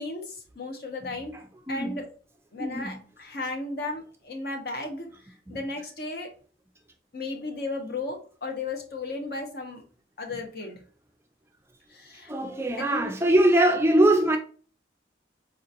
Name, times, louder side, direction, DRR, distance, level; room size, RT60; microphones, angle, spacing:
voice 1, 0.0-1.4 1.7-2.1 2.5-5.1 5.5-6.3 7.1-9.8 10.2-10.8 11.9-12.3 12.8-13.1, left 2 dB, 55° left, 0.8 m, -34 dB
voice 2, 1.7-2.0 2.6-3.0 5.5-5.6 12.3-14.4, right 1 dB, 15° right, 0.3 m, -22 dB
4.3 x 2.9 x 2.4 m
head